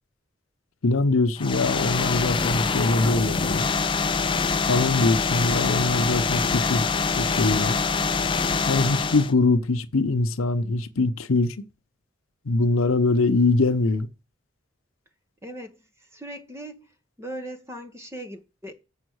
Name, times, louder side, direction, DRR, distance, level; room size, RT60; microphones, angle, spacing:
voice 1, 0.8-3.7 4.7-6.8 7.2-7.8 8.7-11.5 12.4-14.1, left 3 dB, 90° left, 0.8 m, -23 dB
sound 1, 1.4-9.3, left 4 dB, 25° left, 0.4 m, -24 dB
voice 2, 15.4-16.9 17.2-18.7, right 1 dB, 15° right, 0.9 m, -39 dB
7.1 x 5.7 x 6.3 m
head